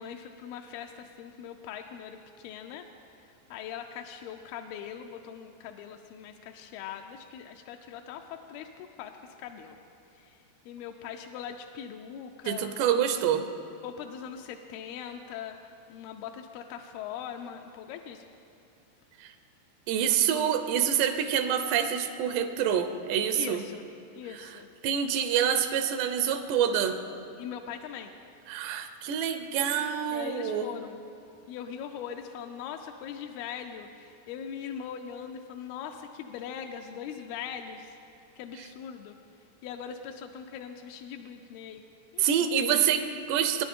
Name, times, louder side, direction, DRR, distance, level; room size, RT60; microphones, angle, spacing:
voice 1, 0.0-2.9 3.5-9.1 9.4-9.8 10.2-10.4 10.7-13.2 13.8-18.3 20.3-20.4 23.4-23.8 24.2-24.7 27.4-28.1 30.1-31.0 31.5-38.0 38.4-39.2 39.6-41.8 42.1-42.5, left 8 dB, 85° left, 4 dB, 2.2 m, -41 dB
voice 2, 12.5-13.4 19.2-19.3 19.9-23.6 24.8-27.0 28.5-30.7 42.2-43.6, right 8 dB, 85° right, 9 dB, 2.8 m, -26 dB
22.0 x 10.5 x 3.6 m, 2.6 s
omnidirectional pair, 4.9 m